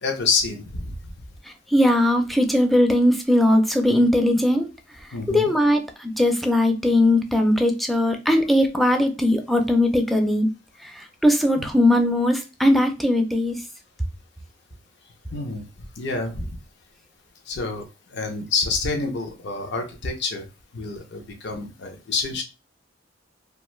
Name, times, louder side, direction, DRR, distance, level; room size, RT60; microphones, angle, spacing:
voice 1, 0.0-1.0 5.1-5.5 15.3-15.7 16.0-16.6 17.5-17.8 18.1-20.5 20.7-22.4, left 4 dB, 65° left, 5 dB, 0.6 m, -27 dB
voice 2, 1.7-4.7 5.3-10.5 10.8-13.6, left 1 dB, ahead, 4 dB, 0.4 m, -19 dB
2.5 x 2.3 x 3.0 m, 0.28 s
head